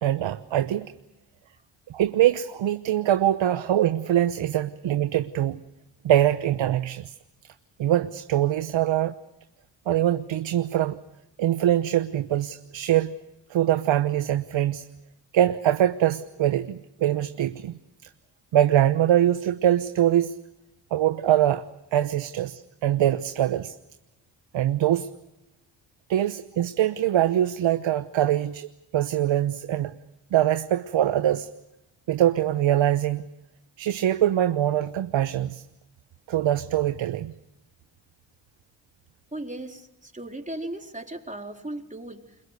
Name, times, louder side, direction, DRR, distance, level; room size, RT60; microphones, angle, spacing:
voice 1, 0.0-0.9 1.9-5.6 6.0-7.1 7.8-9.1 9.9-11.0 11.4-13.1 13.5-14.9 15.3-17.8 18.5-20.4 20.9-21.6 21.9-23.8 24.5-25.1 26.1-29.9 30.3-31.5 32.1-33.2 33.8-35.6 36.3-37.3, right 12 dB, 70° right, 11 dB, 1.0 m, -23 dB
voice 2, 39.3-42.4, right 1 dB, 15° right, 3 dB, 4.0 m, -37 dB
30.0 x 22.5 x 6.7 m, 0.91 s
supercardioid pair, 50°, 47 cm